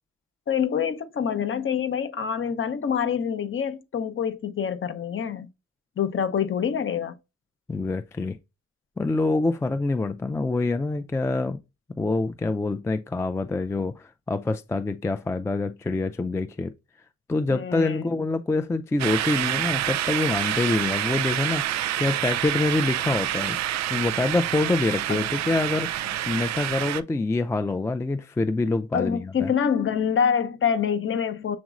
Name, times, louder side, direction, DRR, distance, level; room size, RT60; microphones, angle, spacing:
voice 1, 0.5-5.5 6.0-7.2 17.5-18.2 25.1-25.2 26.0-26.4 28.9-31.6, left 7 dB, 40° left, 0.8 m, -26 dB
voice 2, 7.7-8.4 9.0-11.6 12.0-16.7 17.3-23.6 23.9-29.5, left 3 dB, 10° left, 0.3 m, -26 dB
sound 1, 19.0-27.0, right 13 dB, 60° right, 0.5 m, -27 dB
7.2 x 3.0 x 2.5 m
cardioid pair, 90°, 30 cm